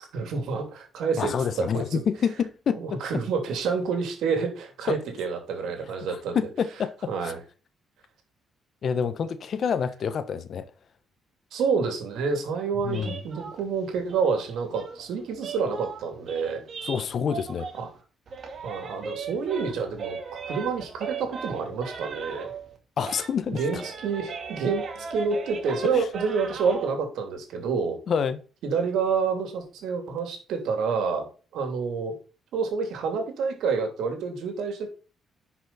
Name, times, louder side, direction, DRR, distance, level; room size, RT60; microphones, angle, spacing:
voice 1, 0.0-2.0 2.8-6.4 7.1-7.4 11.5-16.6 17.7-17.9 18.6-22.5 23.5-28.0 28.6-31.3 31.5-32.2 32.5-34.9, right 5 dB, 80° right, 3.1 m, -28 dB
voice 2, 1.2-3.0 4.9-5.0 6.1-7.3 8.8-10.7 12.8-13.2 16.8-17.7 23.0-23.8 25.9-26.1 28.1-28.4, left 7 dB, 55° left, 1.1 m, -28 dB
sound 1, 12.9-18.0 18.3-22.8 23.0-26.9, right 5 dB, 50° right, 2.4 m, -38 dB
10.5 x 6.1 x 4.3 m
cardioid pair, 90°, 0 cm